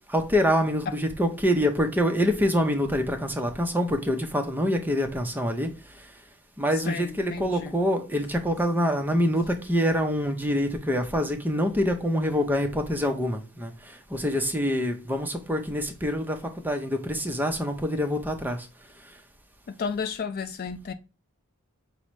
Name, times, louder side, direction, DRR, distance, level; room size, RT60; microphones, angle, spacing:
voice 1, 0.1-6.1 6.6-18.7, equal, 10° right, 0.6 m, -26 dB
voice 2, 6.9-7.7 19.7-20.9, left 5 dB, 45° left, 0.3 m, -33 dB
5.3 x 2.0 x 4.5 m
head